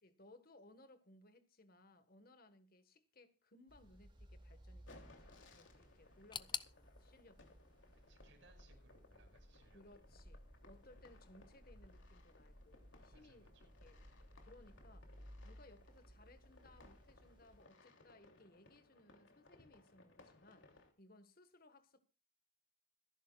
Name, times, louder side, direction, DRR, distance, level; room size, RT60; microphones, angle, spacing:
voice 1, 0.0-7.5 9.7-14.0 14.4-22.0, left 2 dB, 50° left, 1.6 m, -64 dB
sound 1, 3.7-17.6, equal, 25° right, 2.6 m, -60 dB
sound 2, 4.9-20.9, left 2 dB, 80° left, 3.1 m, -65 dB
sound 3, 6.3-9.2 9.4-10.3 10.5-10.6 11.5-11.6, left 7 dB, 25° left, 0.5 m, -50 dB
voice 2, 7.9-10.0 13.1-13.7, right 2 dB, 70° right, 5.7 m, -69 dB
25.5 x 11.0 x 2.5 m
head